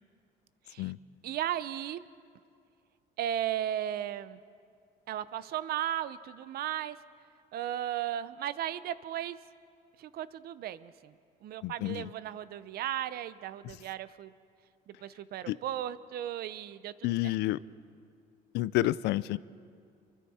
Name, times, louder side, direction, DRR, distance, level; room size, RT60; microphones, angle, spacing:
voice 1, 1.2-2.0 3.2-4.4 5.1-7.0 7.5-9.4 10.0-11.1 11.4-14.3 14.9-16.9, right 11 dB, 65° right, 15 dB, 0.7 m, -35 dB
voice 2, 11.6-12.1 15.5-15.6 17.0-17.6 18.5-19.4, left 16 dB, 85° left, 19 dB, 0.5 m, -29 dB
26.5 x 23.5 x 4.3 m, 2.3 s
cardioid pair, 110°, 17 cm